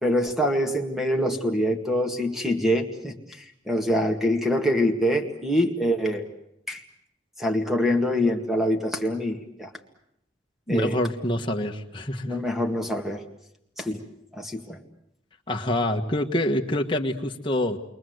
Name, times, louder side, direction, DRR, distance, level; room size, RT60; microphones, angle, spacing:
voice 1, 0.0-3.2 3.7-6.3 6.7-6.8 7.4-9.7 10.7-11.0 12.3-13.2 13.8-14.0 14.4-14.8, equal, ahead, 3 dB, 2.0 m, -24 dB
voice 2, 10.7-12.4 15.5-17.8, left 1 dB, 25° left, 2 dB, 1.5 m, -26 dB
29.0 x 23.0 x 8.0 m, 0.79 s
head